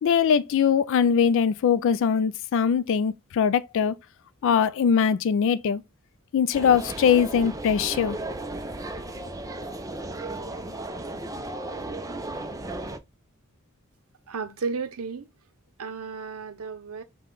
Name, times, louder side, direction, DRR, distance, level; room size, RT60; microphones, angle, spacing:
voice 1, 0.0-4.0 4.4-5.8 6.3-8.2, left 7 dB, 60° left, 0.3 m, -22 dB
sound 1, 6.5-13.0, right 2 dB, 15° right, 0.4 m, -35 dB
voice 2, 14.3-15.3 15.8-17.0, right 5 dB, 85° right, 0.6 m, -33 dB
5.4 x 2.2 x 3.8 m
head